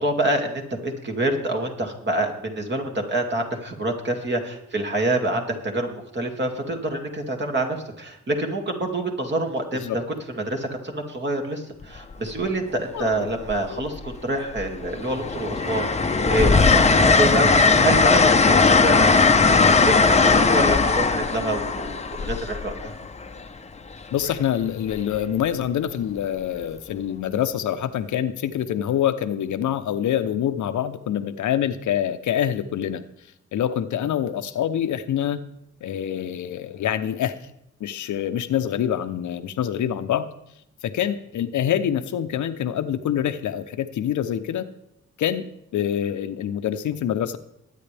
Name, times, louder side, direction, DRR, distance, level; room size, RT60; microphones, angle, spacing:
voice 1, 0.0-10.0 10.4-18.6 18.8-19.1 19.4-22.9, right 1 dB, 40° right, 2 dB, 2.5 m, -26 dB
Train, 11.8-12.1 13.4-14.2 14.6-23.3 24.9-25.2, left 4 dB, 20° left, 0.8 m, -18 dB
voice 2, 12.9-13.3 13.7-13.9 24.1-33.0 33.5-35.4 35.8-37.4 37.8-40.3 40.8-44.7 45.2-45.4 45.7-47.4, left 10 dB, 80° left, 9 dB, 0.9 m, -25 dB
21.5 x 9.4 x 3.5 m, 0.80 s
cardioid pair, 100°, 29 cm